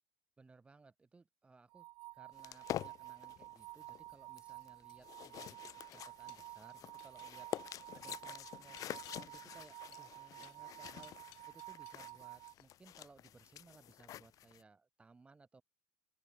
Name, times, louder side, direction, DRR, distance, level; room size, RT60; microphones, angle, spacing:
voice 1, 0.4-1.9 2.1-5.6 5.9-11.1 11.5-15.6, right 3 dB, 10° right, 3.4 m, -62 dB
sound 1, 1.7-12.5, right 20 dB, 50° right, 1.8 m, -52 dB
sound 2, 2.4-14.6, left 12 dB, 40° left, 2.1 m, -48 dB
sound 3, 3.7-12.2 12.5-12.9, left 24 dB, 55° left, 5.6 m, -65 dB
open air
supercardioid pair, 140°, 9 cm